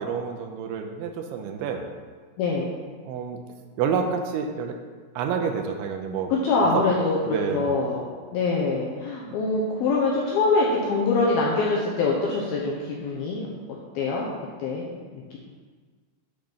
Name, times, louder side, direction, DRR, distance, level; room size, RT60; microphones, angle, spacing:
voice 1, 0.0-1.9 3.1-3.4 3.8-4.8 5.2-6.3 6.6-6.8 7.3-7.8 9.3-9.4, right 6 dB, 85° right, 4 dB, 3.0 m, -28 dB
voice 2, 2.4-2.7 6.3-8.0 8.3-14.3 14.6-14.9 15.1-15.4, left 3 dB, 75° left, -3 dB, 2.3 m, -24 dB
8.6 x 6.3 x 5.8 m, 1.5 s
omnidirectional pair, 5.5 m